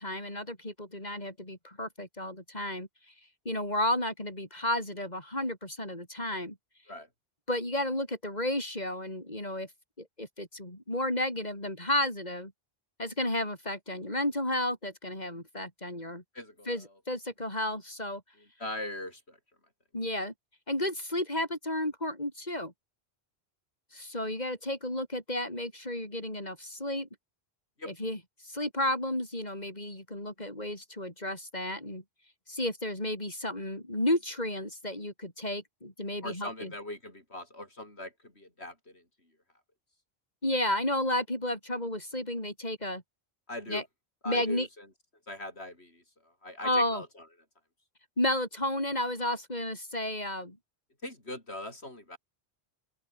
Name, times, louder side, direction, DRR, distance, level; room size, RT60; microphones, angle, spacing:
voice 1, 0.0-2.9 3.5-6.6 7.5-9.7 10.0-12.5 13.0-16.2 16.7-18.2 19.9-20.3 20.7-22.7 23.9-27.1 27.9-32.0 32.5-36.7 40.4-43.0 43.7-43.8 44.3-44.7 46.6-47.0 48.2-50.6, left 1 dB, 40° left, 6.9 m, -32 dB
voice 2, 16.3-16.7 18.6-19.4 27.8-27.9 36.2-39.0 43.5-43.8 44.2-44.9 45.3-46.0 46.4-47.1 51.0-52.2, left 1 dB, 80° left, 7.1 m, -40 dB
open air
omnidirectional pair, 1.1 m